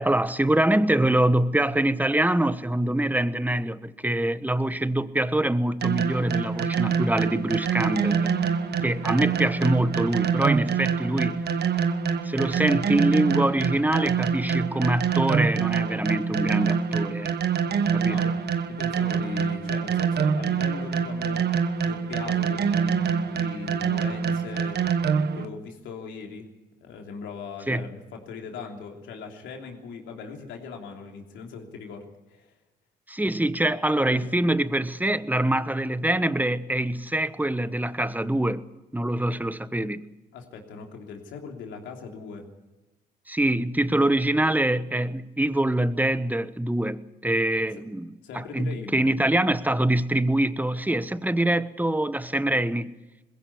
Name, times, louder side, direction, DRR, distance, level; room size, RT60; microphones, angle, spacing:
voice 1, 0.0-8.3 8.8-11.4 12.2-17.3 17.9-18.3 27.7-27.8 33.1-38.7 38.9-40.1 43.3-53.0, right 1 dB, 10° right, 1.2 m, -24 dB
sound 1, 5.8-25.5, right 6 dB, 60° right, 1.3 m, -25 dB
voice 2, 18.7-21.5 21.8-24.8 25.2-26.5 26.8-32.5 34.1-34.3 40.3-42.5 48.2-49.0, left 5 dB, 80° left, 3.2 m, -39 dB
21.0 x 16.0 x 8.5 m
hypercardioid pair, 50°, 19 cm